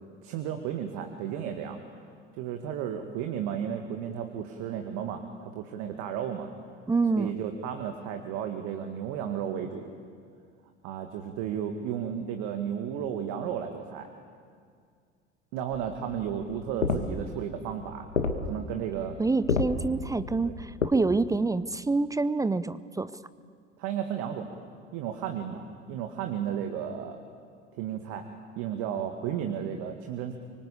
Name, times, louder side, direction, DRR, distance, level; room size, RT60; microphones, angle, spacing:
voice 1, 0.2-1.8 2.4-6.5 7.2-9.9 10.8-14.1 15.5-18.1 18.4-19.2 20.4-20.5 23.8-24.6 24.9-27.2 27.7-28.2 28.6-30.3, right 9 dB, 50° right, 5 dB, 2.0 m, -33 dB
voice 2, 6.9-7.3 19.2-23.1, right 3 dB, 10° right, 16 dB, 0.6 m, -26 dB
sound 1, 15.7-20.9, left 4 dB, 80° left, 1.8 m, -31 dB
25.0 x 24.0 x 8.4 m, 2.1 s
figure-of-eight pair, 70°, 36 cm